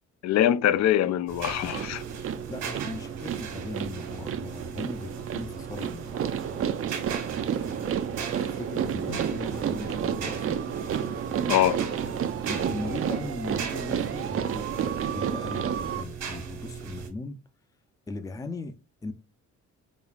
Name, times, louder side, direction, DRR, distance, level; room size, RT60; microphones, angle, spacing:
voice 1, 0.2-2.0 11.5-11.8, left 11 dB, 65° left, 0.5 m, -23 dB
sound 1, 1.3-17.1, right 6 dB, 75° right, 1.5 m, -38 dB
sound 2, 1.7-16.0, right 8 dB, 50° right, 0.5 m, -31 dB
voice 2, 2.5-6.7 7.3-10.6 12.5-17.4 18.1-18.8 19.0-19.1, left 2 dB, 10° left, 0.5 m, -39 dB
sound 3, 7.3-13.5, left 4 dB, 45° left, 1.2 m, -46 dB
5.1 x 2.3 x 2.3 m
cardioid pair, 90°, 30 cm